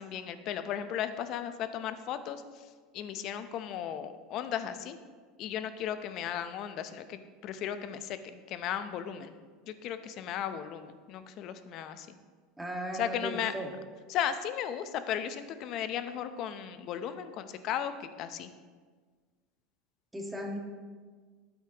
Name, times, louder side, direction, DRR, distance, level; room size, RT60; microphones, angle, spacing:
voice 1, 0.0-2.6 2.9-5.0 5.4-9.3 9.7-12.1 12.9-13.5 14.1-18.5, left 9 dB, 50° left, 10 dB, 0.7 m, -36 dB
voice 2, 12.6-13.7 20.1-20.6, right 1 dB, 10° right, 1 dB, 1.7 m, -36 dB
12.5 x 8.3 x 3.0 m, 1.5 s
supercardioid pair, 100°, 0 cm